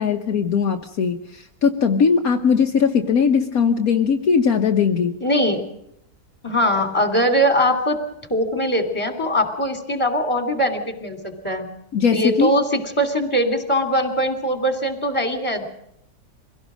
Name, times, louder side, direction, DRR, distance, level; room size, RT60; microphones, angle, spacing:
voice 1, 0.0-5.2 11.9-12.5, left 6 dB, 65° left, 3 dB, 1.5 m, -19 dB
voice 2, 5.2-5.6 6.4-8.0 8.3-11.2 11.4-11.7 12.1-15.6, equal, 20° left, 6 dB, 3.0 m, -21 dB
24.5 x 17.0 x 6.2 m, 0.77 s
omnidirectional pair, 1.7 m